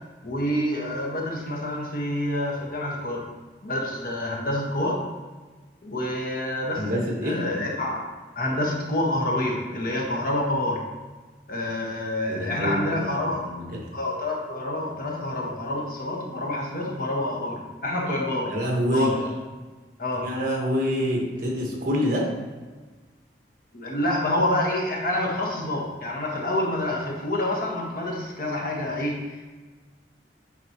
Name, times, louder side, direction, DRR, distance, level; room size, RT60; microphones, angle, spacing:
voice 1, 0.2-3.2 3.6-5.0 5.8-8.1 8.3-10.8 11.5-13.4 13.9-18.5 18.9-19.3 20.0-20.3 23.7-29.5, left 1 dB, 55° left, -1 dB, 1.4 m, -27 dB
voice 2, 6.8-7.4 12.3-13.9 18.5-19.2 20.2-22.3, equal, 50° right, -1 dB, 1.6 m, -26 dB
8.5 x 5.2 x 3.0 m, 1.3 s
head